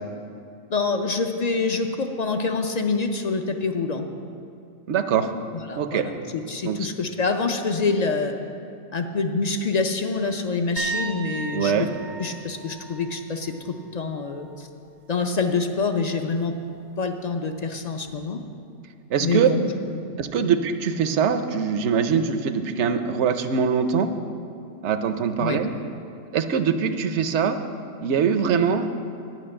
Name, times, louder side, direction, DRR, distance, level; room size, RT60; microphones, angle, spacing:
voice 1, 0.7-4.1 5.5-8.3 8.9-11.9 12.2-14.7 15.1-16.5 17.0-18.4 19.2-20.0 20.4-20.5 25.4-25.6, left 4 dB, 50° left, 6 dB, 0.5 m, -26 dB
voice 2, 4.9-5.3 5.8-6.1 6.6-6.8 11.5-11.9 19.1-19.5 20.2-24.1 24.8-25.7 26.3-27.6 28.0-28.9, right 7 dB, 65° right, 9 dB, 0.9 m, -22 dB
sound 1, 10.8-14.5 14.8-15.2 18.1-18.2, right 4 dB, 85° right, 1.5 m, -36 dB
11.0 x 5.9 x 8.7 m, 2.5 s
omnidirectional pair, 1.3 m